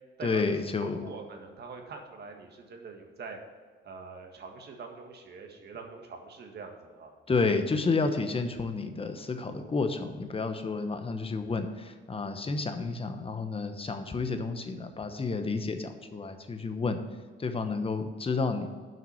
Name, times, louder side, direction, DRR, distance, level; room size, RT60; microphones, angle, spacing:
voice 1, 0.2-1.0 7.3-17.0 17.4-18.7, left 4 dB, 30° left, 8 dB, 1.1 m, -30 dB
voice 2, 0.8-3.4 3.8-7.1, right 4 dB, 55° right, 3 dB, 1.8 m, -44 dB
7.6 x 5.9 x 7.7 m, 1.5 s
cardioid pair, 90°, 20 cm